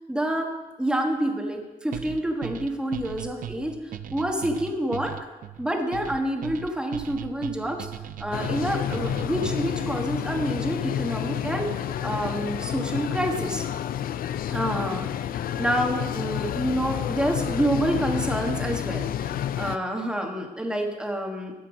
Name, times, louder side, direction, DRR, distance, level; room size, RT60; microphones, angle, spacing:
voice 1, 0.1-0.5 0.8-5.1 5.6-7.9 8.2-11.7 12.0-13.6 14.5-21.5, right 1 dB, 5° right, 2 dB, 1.3 m, -28 dB
sound 1, 1.9-9.8, right 10 dB, 70° right, 0.4 m, -38 dB
sound 2, 8.3-19.8, left 10 dB, 85° left, 0.4 m, -29 dB
13.5 x 5.8 x 6.2 m, 1.2 s
wide cardioid pair, 140°, 15 cm